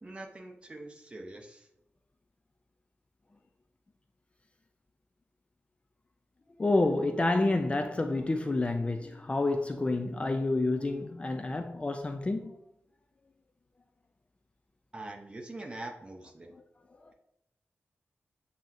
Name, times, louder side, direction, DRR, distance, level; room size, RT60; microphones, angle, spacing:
voice 1, 0.0-1.7 14.9-16.5, right 2 dB, 25° right, 0.7 m, -43 dB
voice 2, 6.6-12.6 17.0-17.1, left 2 dB, 25° left, 0.3 m, -29 dB
7.7 x 2.8 x 2.5 m
wide cardioid pair, 125°, 5 cm